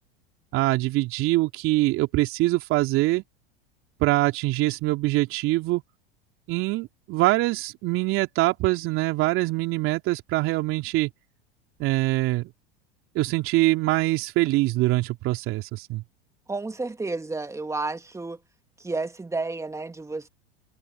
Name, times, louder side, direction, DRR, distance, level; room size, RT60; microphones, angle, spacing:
voice 1, 0.5-3.2 4.0-5.8 6.5-11.1 11.8-12.5 13.1-16.0, right 19 dB, 50° right, 3.1 m, -24 dB
voice 2, 16.5-18.4 18.8-20.3, right 3 dB, 10° right, 2.6 m, -31 dB
hypercardioid pair, 85°, 29 cm